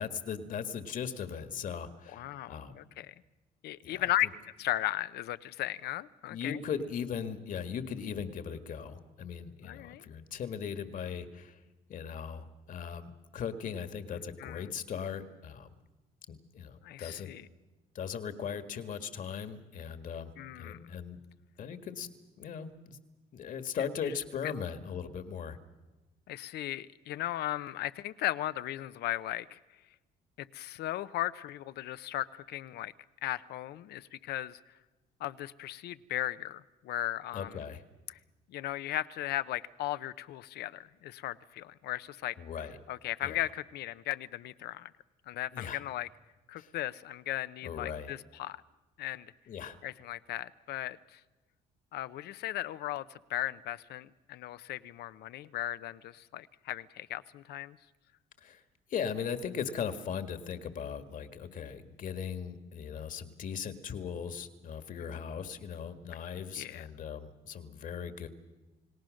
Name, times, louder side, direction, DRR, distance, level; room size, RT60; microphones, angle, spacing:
voice 1, 0.0-2.2 2.5-2.8 3.8-4.3 6.3-11.6 11.9-15.8 16.3-17.3 17.9-21.2 21.6-22.1 22.4-23.0 23.3-25.6 37.3-37.8 42.4-42.8 43.2-43.4 45.5-45.8 46.6-46.7 47.6-48.1 49.5-49.8 58.4-58.6 58.9-68.3, left 7 dB, 55° left, 10 dB, 1.8 m, -38 dB
voice 2, 2.1-3.1 3.6-4.3 4.6-6.6 9.6-10.0 14.4-14.7 16.8-17.5 20.4-20.9 26.3-29.6 30.4-32.9 33.2-34.6 35.2-37.6 38.1-38.2 38.5-42.3 42.9-44.9 45.3-46.1 46.5-48.6 49.0-49.3 49.8-51.2 51.9-53.0 53.3-57.8 66.6-66.9, left 14 dB, 75° left, 15 dB, 0.8 m, -36 dB
29.5 x 18.0 x 6.5 m, 1.1 s
cardioid pair, 110°, 17 cm